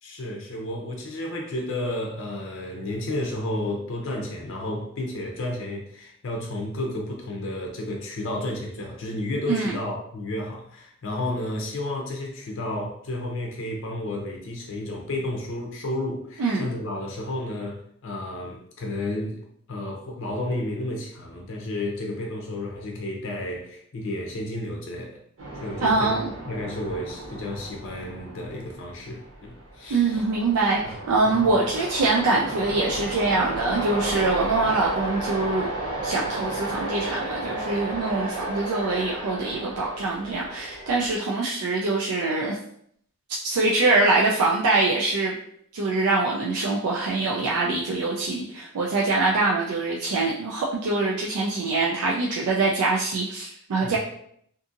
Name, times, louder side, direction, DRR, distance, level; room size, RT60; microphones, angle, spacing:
voice 1, 0.0-19.4 19.7-25.2 25.6-26.2 26.5-30.2 30.8-30.9 31.3-31.5 53.8-54.0, left 1 dB, 60° left, 0 dB, 0.5 m, -32 dB
sound 1, 25.4-41.2, right 2 dB, 65° right, 0.9 m, -33 dB
voice 2, 25.8-26.3 29.9-35.7 36.0-42.6 43.3-45.4 45.7-54.0, right 3 dB, 90° right, -3 dB, 0.4 m, -24 dB
2.6 x 2.6 x 2.5 m, 0.67 s
head